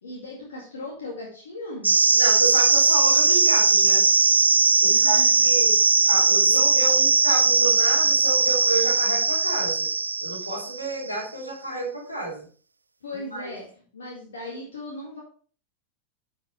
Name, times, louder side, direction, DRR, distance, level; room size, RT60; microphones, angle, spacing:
voice 1, 0.0-1.9 4.8-5.5 6.0-6.1 6.4-6.6 13.0-13.7 13.9-15.2, left 2 dB, 65° left, -3 dB, 2.2 m, -37 dB
sound 1, 1.8-11.0, right 4 dB, 80° right, 0.4 m, -19 dB
voice 2, 2.1-4.0 4.8-5.7 6.0-9.9 10.2-12.4 13.3-13.5, right 2 dB, 85° left, -1 dB, 3.3 m, -31 dB
11.5 x 5.3 x 3.2 m, 0.41 s
figure-of-eight pair, 90°, 0 cm